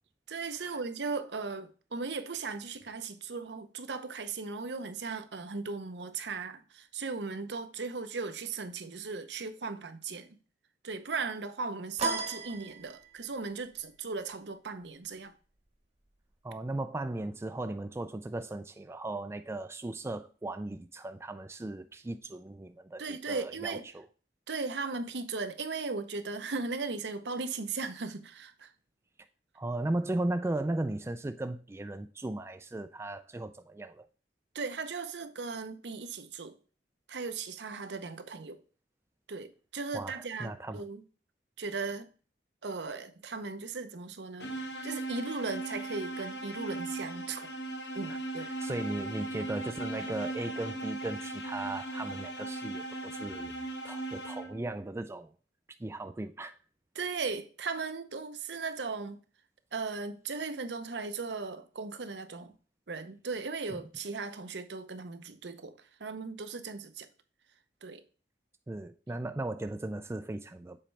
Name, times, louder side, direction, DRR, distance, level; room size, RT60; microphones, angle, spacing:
voice 1, 0.3-10.3 10.8-15.3 23.0-23.8 24.5-28.7 34.5-36.6 37.1-38.6 39.3-41.0 41.6-42.1 42.6-44.5 44.8-47.5 47.9-48.5 56.9-59.2 59.7-62.5 62.9-67.1 67.8-68.0, right 4 dB, 80° right, 0.8 m, -37 dB
sound 1, 12.0-13.4, right 4 dB, 40° right, 1.0 m, -35 dB
voice 2, 16.4-24.1 29.6-34.0 39.9-40.8 48.1-55.3 55.8-56.5 63.7-63.8 68.7-70.8, right 2 dB, 15° right, 0.3 m, -37 dB
sound 2, 44.4-54.7, right 2 dB, 75° left, 1.4 m, -38 dB
7.6 x 4.3 x 3.3 m
head